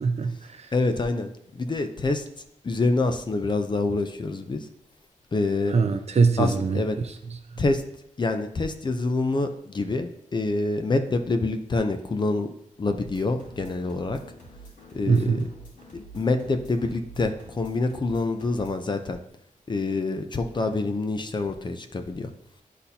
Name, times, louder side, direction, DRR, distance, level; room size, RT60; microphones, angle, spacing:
voice 1, 0.0-0.7 5.7-6.8 15.1-15.4, right 4 dB, 55° right, 8 dB, 0.6 m, -22 dB
voice 2, 0.7-2.2 2.6-4.7 5.3-5.8 6.4-7.0 7.6-7.8 8.2-12.5 12.8-14.2 14.9-15.5 15.9-19.2 19.7-22.3, left 3 dB, 35° left, 6 dB, 0.6 m, -26 dB
sound 1, 13.0-18.7, right 2 dB, 75° left, 2.6 m, -47 dB
12.0 x 4.2 x 2.8 m, 0.75 s
wide cardioid pair, 140°, 13 cm